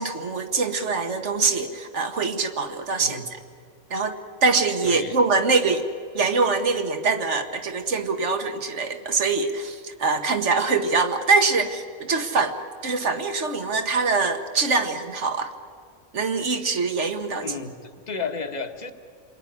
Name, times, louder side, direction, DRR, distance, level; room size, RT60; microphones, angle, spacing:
voice 1, 0.0-3.2 3.9-5.8 6.1-12.6 12.8-15.5 16.1-17.5, right 4 dB, 65° right, 7 dB, 1.7 m, -24 dB
voice 2, 4.8-5.2 17.4-18.9, left 4 dB, 35° left, 6 dB, 1.4 m, -32 dB
28.5 x 21.0 x 9.9 m, 2.3 s
omnidirectional pair, 1.3 m